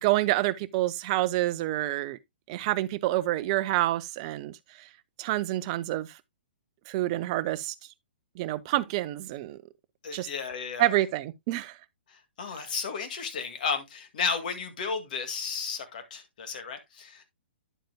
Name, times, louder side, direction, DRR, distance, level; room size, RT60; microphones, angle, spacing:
voice 1, 0.0-2.2 2.5-4.9 5.2-6.2 6.9-7.7 8.3-9.6 10.1-10.3 10.8-11.8, right 16 dB, 35° right, 0.6 m, -28 dB
voice 2, 10.0-10.9 12.4-17.2, left 5 dB, 50° left, 2.0 m, -33 dB
9.9 x 7.7 x 2.2 m
figure-of-eight pair, 120°, 6 cm